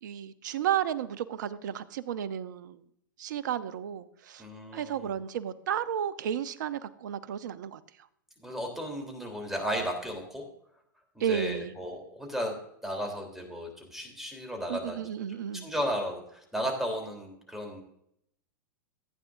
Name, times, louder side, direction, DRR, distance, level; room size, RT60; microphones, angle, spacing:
voice 1, 0.0-2.8 3.2-4.4 4.7-7.8 11.2-11.7 14.7-15.7, right 9 dB, 65° right, 15 dB, 0.8 m, -33 dB
voice 2, 4.4-5.1 8.4-10.4 11.1-12.5 12.8-15.0 15.5-17.8, equal, 5° right, 2 dB, 3.4 m, -34 dB
15.5 x 9.1 x 2.6 m, 0.73 s
hypercardioid pair, 100°, 11 cm